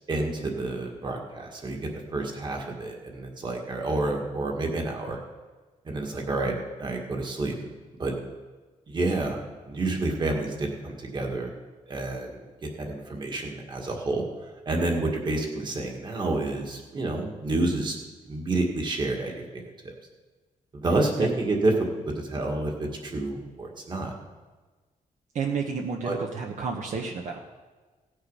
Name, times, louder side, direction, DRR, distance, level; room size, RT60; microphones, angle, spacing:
voice 1, 0.1-5.2 5.8-6.5 6.8-7.5 8.0-8.2 8.9-9.4 9.6-11.5 11.9-14.2 14.6-18.0 18.3-19.4 19.8-19.9 20.7-21.8 22.1-24.1 26.0-26.2, right 2 dB, 35° right, 1 dB, 1.8 m, -29 dB
voice 2, 25.3-27.4, right 5 dB, 60° right, 1 dB, 1.0 m, -31 dB
17.0 x 6.5 x 5.5 m, 1.3 s
wide cardioid pair, 160°, 14 cm